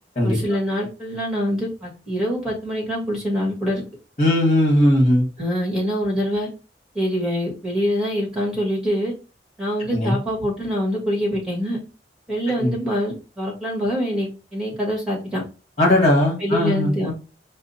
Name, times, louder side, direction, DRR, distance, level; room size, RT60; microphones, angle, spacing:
voice 1, 0.2-3.8 5.4-6.5 6.9-9.1 9.6-11.8 12.3-15.4 16.4-17.1, equal, 5° right, -3 dB, 1.6 m, -25 dB
voice 2, 4.2-5.2 9.9-10.1 12.6-12.7 15.8-16.9, left 1 dB, 40° left, 0 dB, 1.6 m, -18 dB
4.8 x 2.1 x 4.1 m, 0.33 s
head